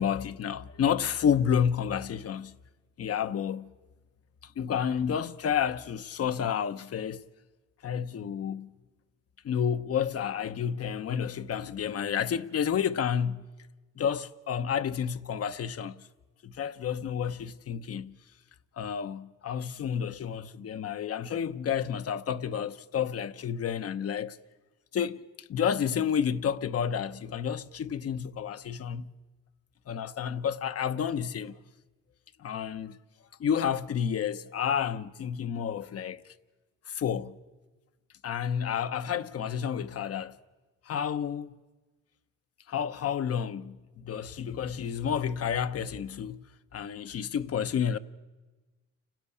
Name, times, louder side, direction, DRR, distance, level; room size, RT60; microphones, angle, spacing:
voice 1, 0.0-2.5 3.0-3.7 4.4-7.3 7.8-8.7 9.4-13.5 14.0-16.0 16.4-18.1 18.8-24.4 24.9-25.2 25.5-29.1 29.9-31.5 32.4-33.0 33.4-36.2 36.9-37.4 38.2-40.4 40.9-41.6 42.7-46.4 46.7-48.0, left 8 dB, 50° left, 0.9 m, -30 dB
30.0 x 10.5 x 8.5 m
cardioid pair, 90°, 30 cm